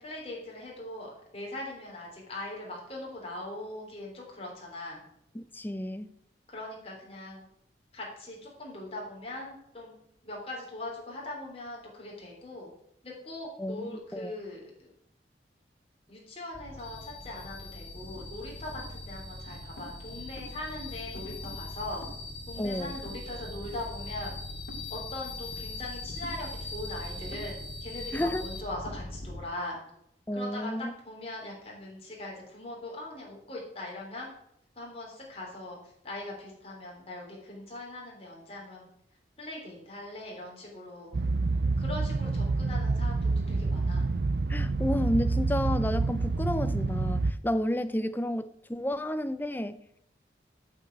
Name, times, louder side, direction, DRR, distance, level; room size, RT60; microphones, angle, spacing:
voice 1, 0.0-5.0 6.5-7.4 7.9-10.0 10.2-12.7 13.0-14.9 16.1-22.0 22.5-24.3 24.9-29.8 30.3-30.7 31.1-34.3 34.8-35.8 36.0-38.9 39.4-41.1 41.8-44.1, left 2 dB, 35° left, 3.7 m, -41 dB
voice 2, 5.3-6.1 13.6-14.4 22.6-23.0 28.1-28.5 30.3-30.9 44.5-49.8, left 1 dB, 10° left, 0.5 m, -31 dB
sound 1, 16.5-29.4, left 2 dB, 65° left, 2.2 m, -40 dB
sound 2, 41.1-47.3, right 3 dB, 60° right, 0.5 m, -28 dB
8.9 x 6.5 x 8.5 m
head